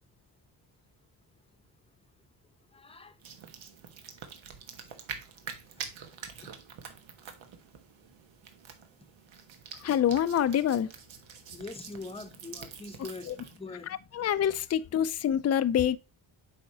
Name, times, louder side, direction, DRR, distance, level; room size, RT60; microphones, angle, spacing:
voice 1, 2.7-3.2 4.9-5.0 6.4-6.5 11.5-13.9, left 3 dB, 10° left, 0.8 m, -43 dB
sound 1, 3.2-13.6, right 7 dB, 80° right, 1.4 m, -46 dB
voice 2, 9.8-10.9 13.3-13.4 13.9-16.0, left 9 dB, 35° left, 0.4 m, -26 dB
7.8 x 5.0 x 2.8 m
cardioid pair, 115°, 46 cm